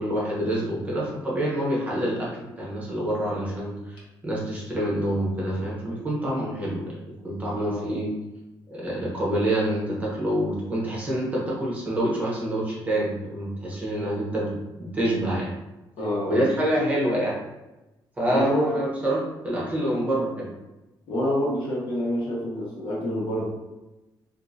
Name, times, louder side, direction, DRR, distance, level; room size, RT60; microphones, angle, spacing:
voice 1, 0.0-2.3 2.6-8.1 8.7-14.5 14.8-15.5 16.3-17.3 18.2-20.5, right 1 dB, 15° right, -5 dB, 0.9 m, -27 dB
voice 2, 7.5-8.0 16.0-16.5 18.3-18.8 21.1-23.5, left 1 dB, 70° left, -5 dB, 1.2 m, -27 dB
3.6 x 2.6 x 2.7 m, 1.0 s
cardioid pair, 155°, 9 cm